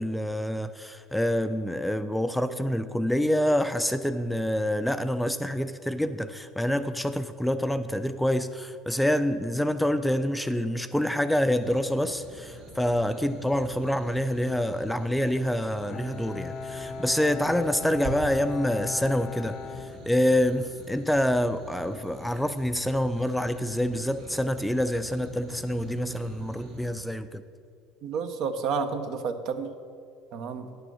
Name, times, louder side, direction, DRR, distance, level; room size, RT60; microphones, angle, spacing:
voice 1, 0.0-27.4, left 1 dB, 5° left, 11 dB, 0.4 m, -27 dB
sound 1, 11.6-26.9, right 1 dB, 85° right, 2.4 m, -44 dB
Bowed string instrument, 15.9-20.7, left 5 dB, 50° left, 0.7 m, -38 dB
voice 2, 28.0-29.7 30.3-30.7, right 5 dB, 60° right, 7 dB, 0.8 m, -30 dB
9.5 x 6.7 x 6.2 m, 2.3 s
supercardioid pair, 85°, 0 cm